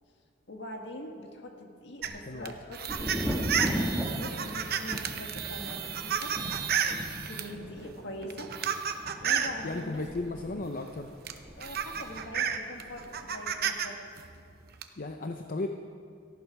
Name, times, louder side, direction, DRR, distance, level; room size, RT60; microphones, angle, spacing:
voice 1, 0.5-3.7 3.9-6.3 7.2-8.5 9.2-10.0 11.6-14.0, left 1 dB, 60° left, 2 dB, 1.9 m, -43 dB
sound 1, 2.0-7.5 8.2-9.6 10.8-10.9 11.3-13.9 14.2-14.8, right 8 dB, 50° right, 0.8 m, -32 dB
Thunder, 2.9-12.5 12.8-13.5, equal, ahead, 1.6 m, -37 dB
voice 2, 9.6-11.1 15.0-15.7, left 2 dB, 45° left, 5 dB, 0.7 m, -35 dB
17.5 x 14.0 x 4.8 m, 2.3 s
head